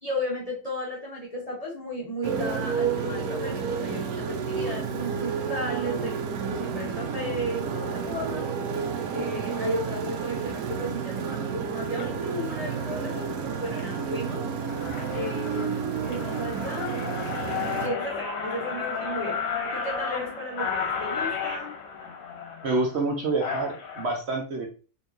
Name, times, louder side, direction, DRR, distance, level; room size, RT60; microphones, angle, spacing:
voice 1, 0.0-8.4 9.1-14.5 15.1-17.0 17.8-19.5 19.7-21.8, left 1 dB, 35° left, -3 dB, 0.7 m, -34 dB
Motorcycle, 2.2-17.9, right 6 dB, 80° right, 1.0 m, -31 dB
sound 1, 11.8-12.0 12.7-12.9 13.4-13.9 14.3-14.4 14.6-24.0, left 6 dB, 70° left, 1.2 m, -33 dB
voice 2, 22.6-24.7, right 3 dB, 55° right, 1 dB, 0.8 m, -27 dB
4.5 x 2.9 x 2.5 m, 0.36 s
omnidirectional pair, 1.6 m